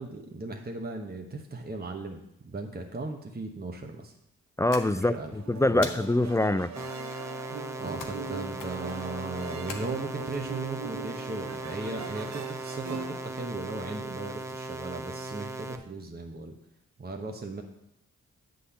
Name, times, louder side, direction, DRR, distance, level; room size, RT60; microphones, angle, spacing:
voice 1, 0.0-4.1 4.9-5.3 5.7-5.9 7.8-16.5 17.0-17.6, right 3 dB, 30° right, 3 dB, 1.0 m, -37 dB
voice 2, 4.6-6.7, left 1 dB, 10° left, 15 dB, 0.3 m, -25 dB
sound 1, 4.7-5.3 5.8-6.4 8.0-8.3 8.6-9.0 9.7-10.4, left 5 dB, 85° left, 1.0 m, -41 dB
sound 2, 5.2-13.5, right 5 dB, 60° right, 0.8 m, -42 dB
sound 3, 6.8-15.8, right 2 dB, 10° right, 0.8 m, -38 dB
8.2 x 4.0 x 6.9 m, 0.79 s
cardioid pair, 45°, 31 cm